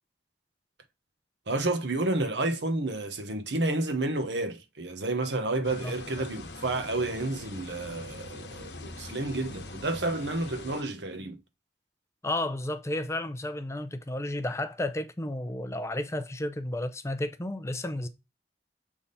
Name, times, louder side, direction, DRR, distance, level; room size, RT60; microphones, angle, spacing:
voice 1, 1.5-11.4, right 2 dB, 80° right, 1.1 m, -30 dB
sound 1, 5.6-10.8, left 2 dB, 70° left, 1.1 m, -43 dB
voice 2, 5.8-6.3 12.2-18.1, left 1 dB, 15° left, 0.5 m, -32 dB
7.1 x 3.6 x 4.0 m
head